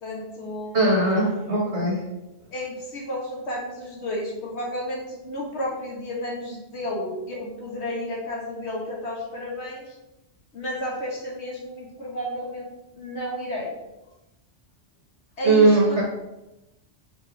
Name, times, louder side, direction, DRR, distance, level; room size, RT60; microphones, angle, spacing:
voice 1, 0.0-1.0 2.5-10.0 10.5-12.7 13.0-13.7 15.4-16.0, left 1 dB, 75° left, -2 dB, 1.8 m, -32 dB
voice 2, 0.7-2.0 15.4-16.0, right 2 dB, 75° right, -2 dB, 2.0 m, -19 dB
4.8 x 4.7 x 4.7 m, 0.95 s
omnidirectional pair, 1.2 m